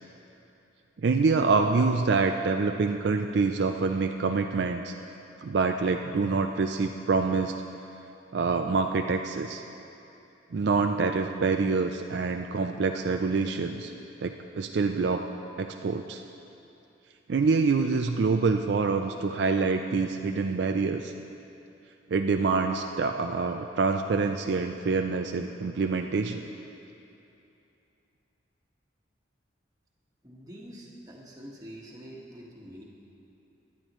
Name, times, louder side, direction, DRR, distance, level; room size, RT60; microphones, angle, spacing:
voice 1, 1.0-4.9 5.4-7.5 8.3-9.6 10.5-13.9 14.2-15.2 15.6-16.2 17.3-21.1 22.1-26.4, right 4 dB, 60° right, 5 dB, 0.4 m, -26 dB
voice 2, 30.2-32.8, equal, 20° right, -4 dB, 1.6 m, -45 dB
17.5 x 11.5 x 3.1 m, 2.9 s
head